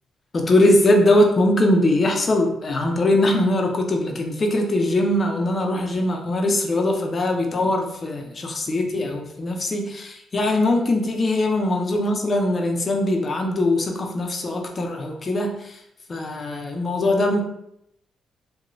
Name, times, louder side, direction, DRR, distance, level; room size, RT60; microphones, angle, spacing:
voice 1, 0.3-15.8 16.1-17.4, left 1 dB, 35° left, 3 dB, 0.5 m, -21 dB
3.0 x 2.1 x 2.5 m, 0.76 s
cardioid pair, 90°, 0 cm